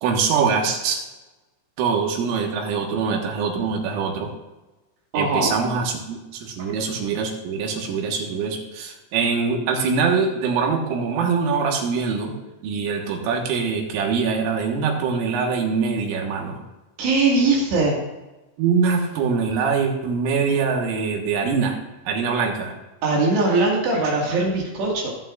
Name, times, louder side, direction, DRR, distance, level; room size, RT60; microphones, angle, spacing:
voice 1, 0.0-1.0 1.8-4.3 5.2-12.3 12.6-16.6 18.6-21.8 22.1-22.7, right 5 dB, 90° right, 1 dB, 4.1 m, -23 dB
voice 2, 5.1-5.5 6.6-6.7 17.0-18.0 23.0-25.1, right 3 dB, 65° right, -2 dB, 4.0 m, -21 dB
21.0 x 8.1 x 2.5 m, 1.1 s
omnidirectional pair, 5.7 m